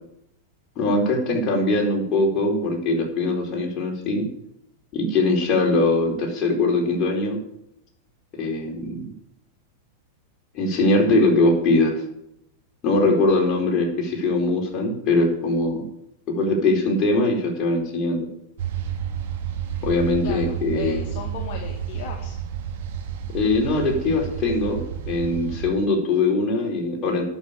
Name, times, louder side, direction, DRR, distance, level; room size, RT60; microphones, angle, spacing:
voice 1, 0.8-4.3 4.9-7.4 8.4-9.0 10.5-12.0 12.8-15.8 16.3-18.3 19.8-21.1 23.3-24.8 25.1-27.2, left 2 dB, 35° left, 0 dB, 4.6 m, -21 dB
sound 1, 18.6-25.7, right 8 dB, 65° right, 2.1 m, -31 dB
voice 2, 20.2-22.4, left 6 dB, 55° left, 0 dB, 2.1 m, -36 dB
11.0 x 6.4 x 8.8 m, 0.79 s
hypercardioid pair, 105°, 0 cm